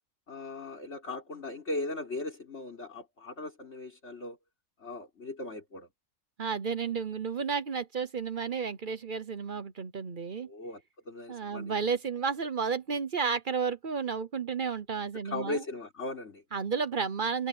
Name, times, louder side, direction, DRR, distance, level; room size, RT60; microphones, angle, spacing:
voice 1, 0.3-4.4 4.8-5.9 10.4-11.7 15.2-16.4, left 2 dB, 50° left, 4.0 m, -38 dB
voice 2, 6.4-10.5 11.3-15.6 16.5-17.5, right 5 dB, 40° right, 0.9 m, -32 dB
omnidirectional pair, 1.5 m